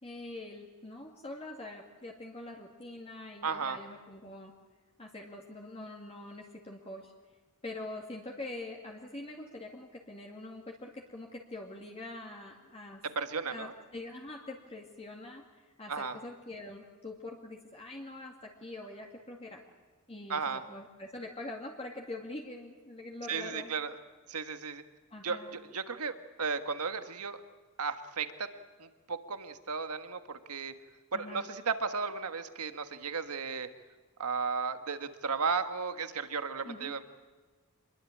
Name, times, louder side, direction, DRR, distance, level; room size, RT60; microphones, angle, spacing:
voice 1, 0.0-4.5 5.0-7.1 7.6-13.0 13.5-19.6 20.1-23.7 25.1-25.6 31.1-31.5 36.7-36.9, left 2 dB, 25° left, 0 dB, 2.3 m, -44 dB
voice 2, 3.4-3.8 13.0-13.7 15.9-16.2 20.3-20.6 23.3-23.9 24.3-24.8 25.2-27.4 27.8-28.5 28.8-30.7 31.1-33.7 34.2-37.0, right 5 dB, 90° right, 9 dB, 1.6 m, -34 dB
26.5 x 22.0 x 8.6 m, 1.4 s
head